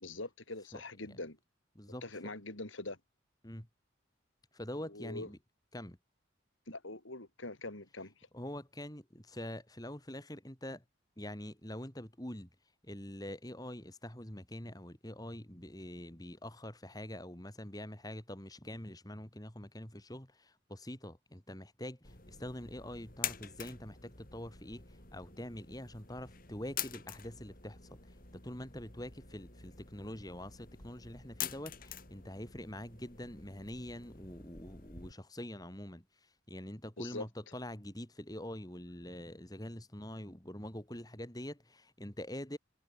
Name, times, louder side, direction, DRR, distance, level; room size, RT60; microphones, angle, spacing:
voice 1, 0.0-1.4 2.0-3.0 4.8-5.3 6.7-8.1 37.0-37.3, left 2 dB, 75° left, 4.0 m, -43 dB
voice 2, 4.5-5.4 5.7-6.0 8.3-10.8 11.2-12.5 12.8-42.6, left 1 dB, 20° left, 3.1 m, -45 dB
sound 1, 22.0-35.1, left 9 dB, 45° left, 5.3 m, -46 dB
head